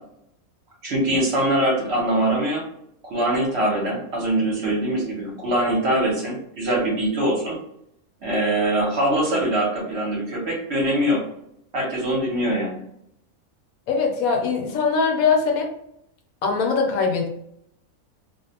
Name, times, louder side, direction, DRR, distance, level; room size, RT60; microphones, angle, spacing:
voice 1, 0.8-2.6 3.0-7.6 8.2-11.2 11.7-12.8, right 1 dB, 55° right, -3 dB, 0.9 m, -23 dB
voice 2, 13.9-15.7 16.4-17.3, left 5 dB, 75° left, 3 dB, 1.0 m, -21 dB
2.5 x 2.1 x 2.7 m, 0.75 s
omnidirectional pair, 1.5 m